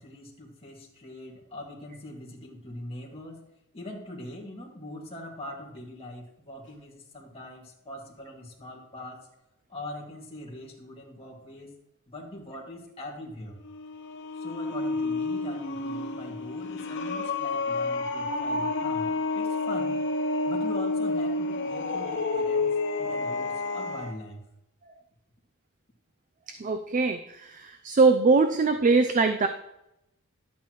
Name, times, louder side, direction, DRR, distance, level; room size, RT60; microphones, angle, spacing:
voice 1, 0.0-3.4 3.7-9.2 9.7-11.7 12.1-13.5 14.3-20.0 20.5-24.4, left 1 dB, 25° left, -2 dB, 2.1 m, -42 dB
sound 1, 13.6-24.1, left 3 dB, 60° left, 0.9 m, -29 dB
voice 2, 26.5-29.5, right 4 dB, 35° right, 8 dB, 0.5 m, -22 dB
11.5 x 8.4 x 3.1 m, 0.85 s
head